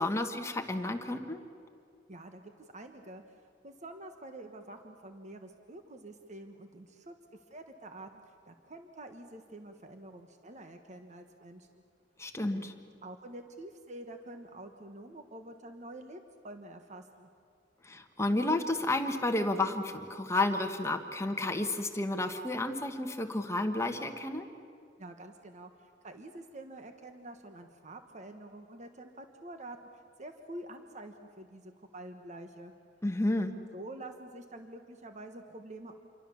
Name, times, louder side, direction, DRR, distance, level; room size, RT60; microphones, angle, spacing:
voice 1, 0.0-1.4 12.2-12.7 17.8-24.5 33.0-33.5, left 2 dB, 15° left, 5 dB, 1.5 m, -31 dB
voice 2, 2.1-3.4 3.6-7.1 7.5-11.8 12.5-12.6 13.0-17.3 25.0-32.7 33.3-35.9, right 1 dB, 40° right, 6 dB, 1.3 m, -47 dB
28.0 x 23.5 x 7.1 m, 2.3 s
head